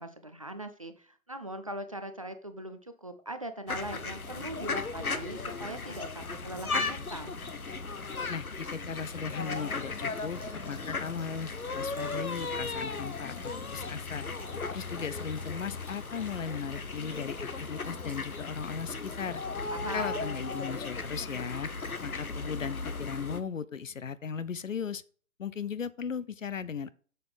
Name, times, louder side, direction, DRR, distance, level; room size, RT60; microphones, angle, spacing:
voice 1, 0.0-7.3 19.7-20.3, right 1 dB, 25° right, 9 dB, 0.5 m, -40 dB
sound 1, 3.7-23.4, left 4 dB, 80° left, 1.2 m, -36 dB
Liquid, 8.1-22.5 22.8-22.9 23.4-23.5, left 1 dB, 5° left, 1.3 m, -55 dB
voice 2, 8.3-14.2 14.7-19.4 19.9-21.7 22.0-25.0 25.4-26.9, left 6 dB, 65° left, 16 dB, 0.8 m, -37 dB
7.7 x 6.9 x 5.1 m, 0.44 s
figure-of-eight pair, 140°, 42 cm